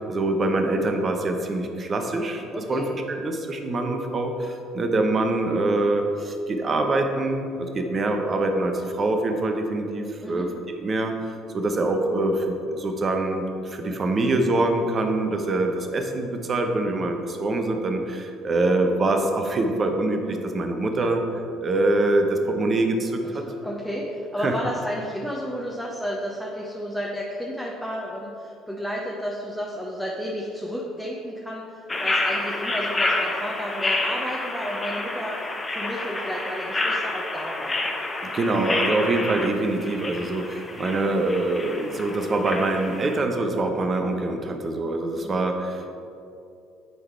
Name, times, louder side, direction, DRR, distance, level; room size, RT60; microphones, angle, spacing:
voice 1, 0.0-2.4 2.7-2.8 3.2-10.5 10.8-21.2 21.6-23.4 24.4-24.5 38.2-45.9, right 2 dB, 40° right, 4 dB, 1.0 m, -24 dB
voice 2, 2.5-2.8 10.2-10.5 23.2-35.4 35.7-37.8 45.1-45.3, equal, ahead, -3 dB, 1.0 m, -32 dB
sound 1, 31.9-43.2, left 2 dB, 25° left, 0.9 m, -29 dB
9.5 x 3.9 x 4.6 m, 2.6 s
hypercardioid pair, 60°, 0 cm